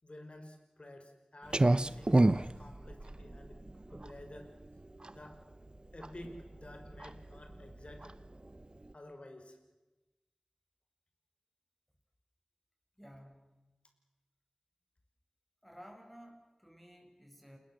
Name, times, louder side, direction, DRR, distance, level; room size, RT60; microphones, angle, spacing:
voice 1, 0.0-3.6 3.9-4.5 5.1-5.4 5.9-8.1 8.9-9.6, left 1 dB, 55° left, 5 dB, 5.7 m, -51 dB
Clock, 1.5-8.9, right 2 dB, 40° right, 0.8 m, -32 dB
voice 2, 13.0-13.6 15.6-17.6, equal, 5° left, 3 dB, 7.0 m, -54 dB
29.0 x 21.0 x 7.8 m, 1.1 s
wide cardioid pair, 55°, 2 cm